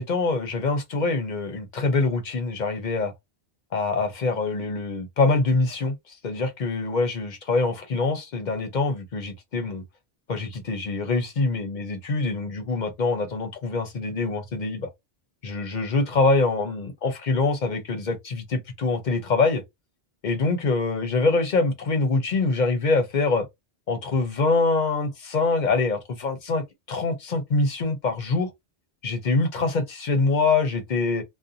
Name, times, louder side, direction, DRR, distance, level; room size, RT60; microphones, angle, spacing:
voice 1, 0.0-3.1 3.7-6.0 6.2-9.8 10.3-14.9 15.4-19.6 20.2-23.5 23.9-28.5 29.0-31.2, left 3 dB, 50° left, 0.8 m, -24 dB
2.5 x 2.2 x 2.6 m
omnidirectional pair, 1.1 m